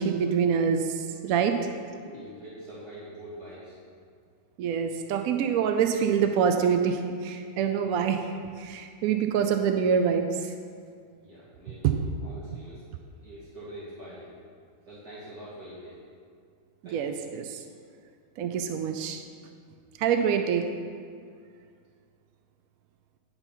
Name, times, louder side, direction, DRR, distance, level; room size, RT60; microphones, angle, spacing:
voice 1, 0.0-1.6 4.6-8.3 8.6-10.5 11.8-11.9 16.8-17.6 18.4-19.2 20.0-20.7, right 7 dB, 75° right, 6 dB, 0.8 m, -25 dB
voice 2, 1.9-3.7 11.2-11.9 12.2-12.8 13.2-14.3 14.9-16.0 16.8-17.2, right 1 dB, 55° right, -10 dB, 2.3 m, -44 dB
9.7 x 4.4 x 5.6 m, 2.2 s
omnidirectional pair, 2.0 m